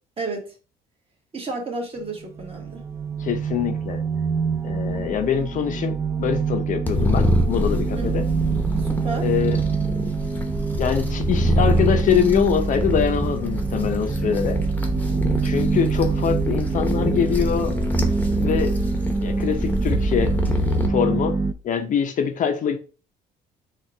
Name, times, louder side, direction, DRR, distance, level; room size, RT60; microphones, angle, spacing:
voice 1, 0.2-0.5 1.3-2.8 8.0-8.1 8.8-9.3, right 3 dB, 35° right, 1.5 m, -31 dB
sound 1, 2.0-21.5, right 4 dB, 15° right, 0.4 m, -26 dB
voice 2, 3.2-4.0 4.6-8.3 9.2-9.6 10.8-14.6 15.4-17.7 18.3-18.8 19.2-20.4 20.9-21.4 21.6-22.8, left 8 dB, 50° left, 0.6 m, -24 dB
sound 2, 6.9-20.9, equal, 10° left, 0.9 m, -25 dB
4.4 x 2.4 x 4.8 m
cardioid pair, 110°, 17 cm